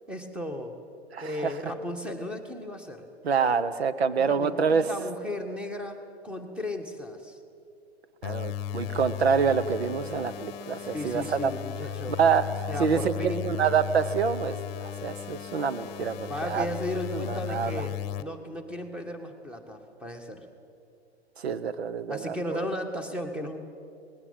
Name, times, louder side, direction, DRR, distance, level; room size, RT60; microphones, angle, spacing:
voice 1, 0.1-0.7 1.2-3.0 4.2-7.4 10.8-12.2 12.7-13.6 16.3-20.5 22.1-23.6, left 1 dB, 5° right, 6 dB, 1.7 m, -35 dB
voice 2, 1.1-1.5 3.2-4.9 8.2-11.5 12.2-12.4 12.8-16.7 17.1-17.8 21.4-22.7, right 6 dB, 70° right, 12 dB, 1.0 m, -26 dB
sound 1, 8.2-18.2, left 11 dB, 40° left, 1.0 m, -36 dB
19.5 x 17.0 x 8.9 m, 2.4 s
figure-of-eight pair, 110°, 33 cm